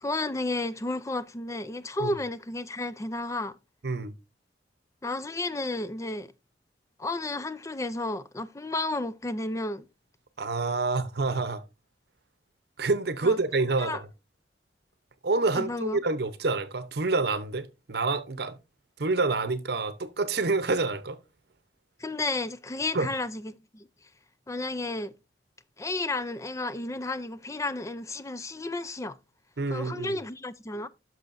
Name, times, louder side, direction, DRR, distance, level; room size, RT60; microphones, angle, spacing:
voice 1, 0.0-3.6 5.0-6.3 7.0-9.9 13.2-13.4 13.8-14.0 15.5-16.0 22.0-23.9 24.5-25.1 25.8-29.2 29.7-30.9, left 2 dB, 15° left, 0.4 m, -32 dB
voice 2, 10.4-11.6 12.8-14.1 15.2-18.6 19.0-21.2 22.9-23.1 29.6-30.2, right 3 dB, 65° right, 0.8 m, -27 dB
10.5 x 6.2 x 2.6 m
head